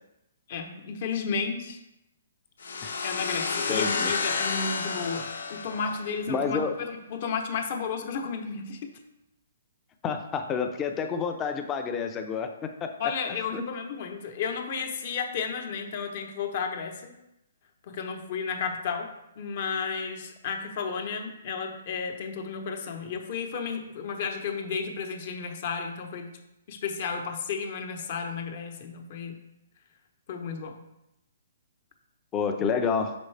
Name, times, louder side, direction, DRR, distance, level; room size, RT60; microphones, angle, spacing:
voice 1, 0.5-1.8 3.0-8.9 13.0-17.1 17.9-26.3 26.7-29.4 30.3-30.8, left 5 dB, 40° left, 4 dB, 0.9 m, -33 dB
sound 1, 2.6-6.3, left 4 dB, 80° left, 1.0 m, -30 dB
voice 2, 3.7-4.1 6.3-6.8 10.0-12.9 13.3-13.6 32.3-33.1, left 6 dB, 15° left, 6 dB, 0.5 m, -29 dB
6.3 x 5.1 x 3.3 m, 0.88 s
hypercardioid pair, 165°, 0 cm